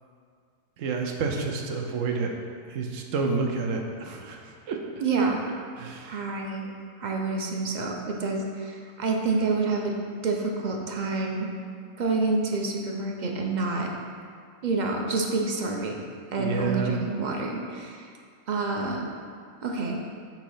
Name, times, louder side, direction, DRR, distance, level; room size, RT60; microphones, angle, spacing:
voice 1, 0.8-2.3 2.7-4.4 4.7-4.8 5.8-6.2 16.4-17.0, right 4 dB, 75° right, 2 dB, 1.1 m, -29 dB
voice 2, 5.0-5.4 6.0-6.7 7.0-9.9 10.2-11.5 12.0-13.9 14.6-16.0 16.3-18.1 18.5-19.1 19.6-20.0, right 3 dB, 50° right, 1 dB, 0.6 m, -28 dB
7.2 x 2.9 x 5.5 m, 2.2 s
omnidirectional pair, 1.4 m